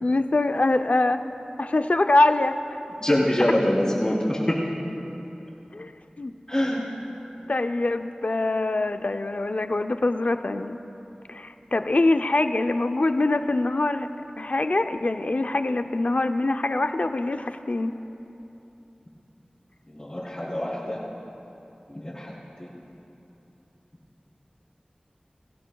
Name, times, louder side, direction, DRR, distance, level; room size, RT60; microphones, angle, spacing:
voice 1, 0.0-1.2 1.6-2.6 5.7-5.9 6.2-6.3 7.5-10.8 11.3-14.1 14.4-17.9, left 2 dB, 60° left, 8 dB, 0.5 m, -24 dB
voice 2, 3.0-4.6 6.5-6.8 19.9-21.0 21.9-22.3, left 1 dB, 30° left, -11 dB, 3.7 m, -24 dB
24.5 x 15.5 x 2.3 m, 2.9 s
wide cardioid pair, 50°, 3 cm